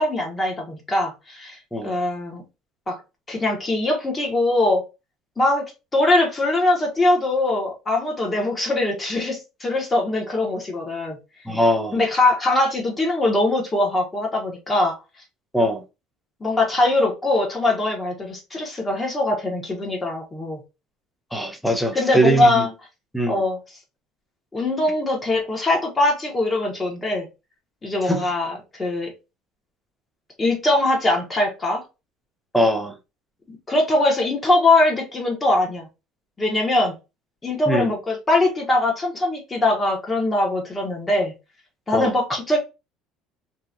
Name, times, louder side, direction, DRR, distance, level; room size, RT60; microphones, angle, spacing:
voice 1, 0.0-2.4 2.9-3.0 3.3-4.8 5.4-11.2 11.9-15.0 16.4-20.6 21.9-22.7 23.3-23.6 24.5-27.3 27.8-29.1 30.4-31.8 33.5-35.9 36.4-37.0 37.4-41.3 41.9-42.6, left 2 dB, 20° left, 1.1 m, -22 dB
voice 2, 11.5-12.0 15.5-15.8 21.3-22.6 23.1-23.4 28.1-28.2 32.5-33.0 37.7-37.9 41.9-42.1, right 1 dB, ahead, 0.6 m, -21 dB
2.9 x 2.4 x 2.4 m
cardioid pair, 120°, 0 cm